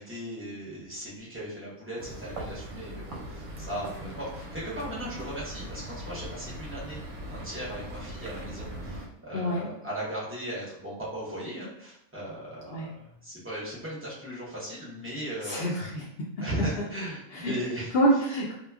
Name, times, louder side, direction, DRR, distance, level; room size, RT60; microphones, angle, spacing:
voice 1, 0.0-7.0 7.3-15.6 16.4-17.9, right 1 dB, 15° right, -7 dB, 0.4 m, -37 dB
sound 1, 2.0-9.1, right 1 dB, 65° right, 0.8 m, -40 dB
voice 2, 9.3-9.7 12.7-12.9 15.4-16.0 17.3-17.5 17.9-18.5, right 1 dB, 75° left, -3 dB, 0.5 m, -26 dB
2.9 x 2.2 x 2.3 m, 0.81 s
omnidirectional pair, 1.5 m